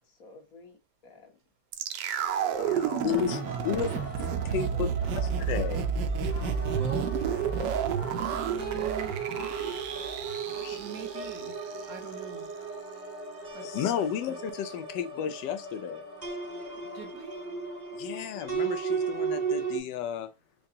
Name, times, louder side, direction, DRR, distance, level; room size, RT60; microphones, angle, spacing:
voice 1, 0.1-1.3 2.7-3.1 3.5-3.9 4.5-5.2, left 4 dB, 55° left, 1.6 m, -51 dB
sound 1, 1.7-11.9 12.1-12.2, right 7 dB, 85° right, 1.3 m, -31 dB
sound 2, 2.3-19.8, right 5 dB, 40° right, 0.6 m, -36 dB
voice 2, 2.6-5.9 10.6-10.8 13.6-16.0 18.0-20.3, left 8 dB, 90° left, 1.3 m, -33 dB
sound 3, 3.1-4.5 5.0-5.9 6.3-8.4 8.9-18.6, equal, 10° left, 0.8 m, -48 dB
voice 3, 6.8-7.2 8.1-9.2 10.7-11.5 11.8-12.5 13.5-13.6 14.0-14.1 16.9-17.5, right 7 dB, 65° right, 1.1 m, -42 dB
4.7 x 2.3 x 2.6 m
omnidirectional pair, 1.9 m